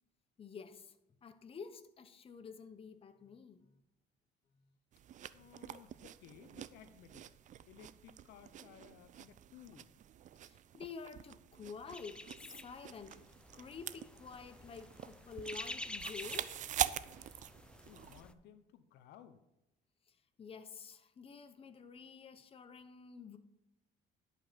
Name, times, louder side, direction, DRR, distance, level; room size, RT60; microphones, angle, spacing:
voice 1, 0.4-1.0 1.2-3.7 5.5-5.6 10.4-13.2 13.5-16.6 20.1-23.4, left 5 dB, 35° left, 0.9 m, -50 dB
sound 1, 4.9-18.2, right 10 dB, 45° right, 0.5 m, -45 dB
voice 2, 5.3-7.2 7.7-10.0 17.8-19.4, left 9 dB, 80° left, 0.9 m, -58 dB
sound 2, 11.9-18.3, left 1 dB, 5° left, 0.6 m, -49 dB
11.5 x 5.5 x 5.8 m
cardioid pair, 110°, 17 cm